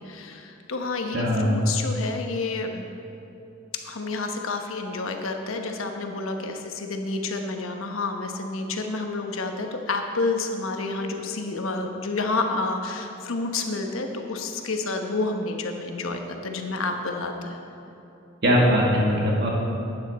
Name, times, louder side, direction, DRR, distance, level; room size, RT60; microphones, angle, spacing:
voice 1, 0.0-2.8 3.8-17.6, left 3 dB, 85° left, 4 dB, 1.0 m, -29 dB
voice 2, 1.1-1.6 18.4-19.5, equal, 55° right, -2 dB, 1.9 m, -20 dB
11.5 x 8.9 x 4.2 m, 2.9 s
head